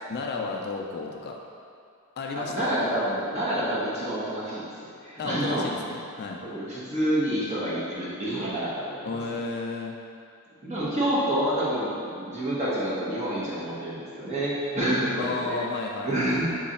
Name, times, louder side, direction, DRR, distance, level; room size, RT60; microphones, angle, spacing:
voice 1, 0.1-1.4 2.2-2.7 5.2-6.4 9.1-10.0 15.2-16.6, left 3 dB, 45° left, 1 dB, 0.3 m, -33 dB
voice 2, 2.3-5.7 6.4-9.4 10.6-15.6 16.0-16.5, right 1 dB, 30° right, -8 dB, 1.0 m, -28 dB
3.8 x 3.2 x 4.1 m, 2.4 s
head